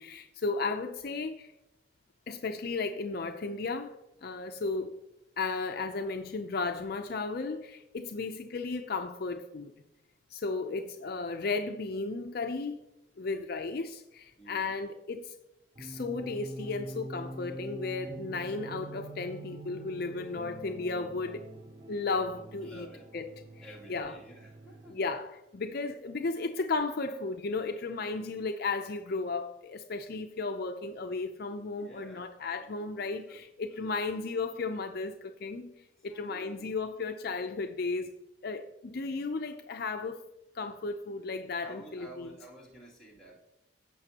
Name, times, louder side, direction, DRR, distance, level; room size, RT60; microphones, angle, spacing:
voice 1, 0.0-1.5 2.3-4.0 4.2-4.9 5.4-9.7 10.3-12.7 13.2-15.3 15.8-21.4 21.9-23.2 23.6-24.2 24.9-35.7 36.0-38.1 38.4-40.2 40.5-42.4, left 3 dB, 50° left, 0.5 m, -34 dB
voice 2, 14.4-14.8 22.6-23.1 23.6-25.1 31.8-33.4 33.7-33.9 36.0-36.6 41.6-43.4, right 1 dB, 5° left, 2.5 m, -52 dB
sound 1, 15.8-24.9, right 1 dB, 20° right, 0.5 m, -45 dB
15.5 x 5.9 x 2.8 m
head